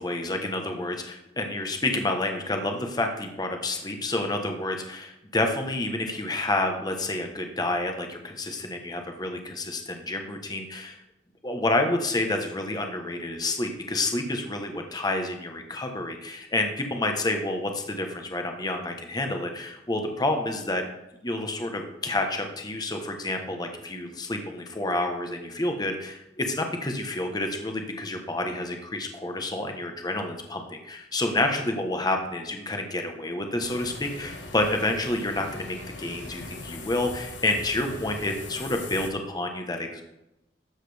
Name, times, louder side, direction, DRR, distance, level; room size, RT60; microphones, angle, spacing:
voice 1, 0.0-11.0 11.4-20.8 21.2-40.0, left 2 dB, 20° left, 4 dB, 1.1 m, -29 dB
sound 1, 33.6-39.1, left 2 dB, 75° left, 1.4 m, -40 dB
13.0 x 7.5 x 3.4 m, 0.89 s
head